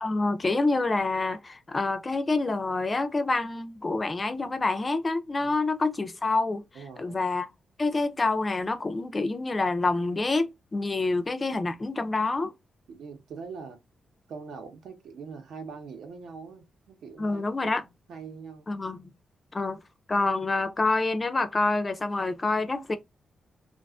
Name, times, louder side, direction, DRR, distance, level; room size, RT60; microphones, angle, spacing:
voice 1, 0.0-6.6 7.0-7.5 7.8-12.5 17.2-17.8 18.7-19.1 19.5-19.8 20.1-23.0, left 3 dB, 20° left, 0.3 m, -27 dB
voice 2, 6.7-7.2 11.0-11.2 12.9-13.8 14.3-18.7, right 5 dB, 75° right, 0.8 m, -43 dB
2.4 x 2.3 x 2.3 m
wide cardioid pair, 160°, 0 cm